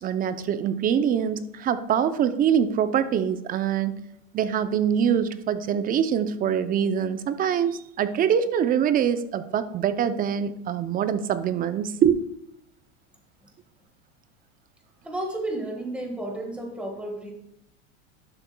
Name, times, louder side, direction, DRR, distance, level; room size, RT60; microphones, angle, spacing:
voice 1, 0.0-3.9 4.3-12.2, right 8 dB, 25° right, 12 dB, 0.5 m, -24 dB
voice 2, 15.0-17.3, right 1 dB, 5° right, 1 dB, 1.5 m, -32 dB
11.5 x 6.9 x 2.2 m, 0.79 s
supercardioid pair, 120°, 33 cm